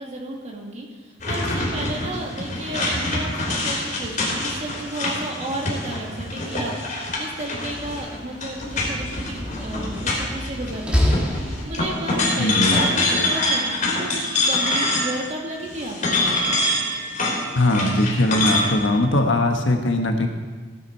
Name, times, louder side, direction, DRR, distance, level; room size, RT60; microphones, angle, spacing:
voice 1, 0.0-6.7 7.2-11.2 11.6-16.4, right 1 dB, 35° right, -1 dB, 2.1 m, -33 dB
sound 1, 1.2-10.7 11.0-15.3 15.7-18.7, left 2 dB, 45° left, 3.4 m, -25 dB
Slam, 7.5-12.2, left 1 dB, 5° right, 1.9 m, -28 dB
voice 2, 12.4-12.8 17.5-20.3, left 1 dB, 80° left, 4 dB, 1.3 m, -20 dB
16.0 x 8.8 x 4.5 m, 1.5 s
head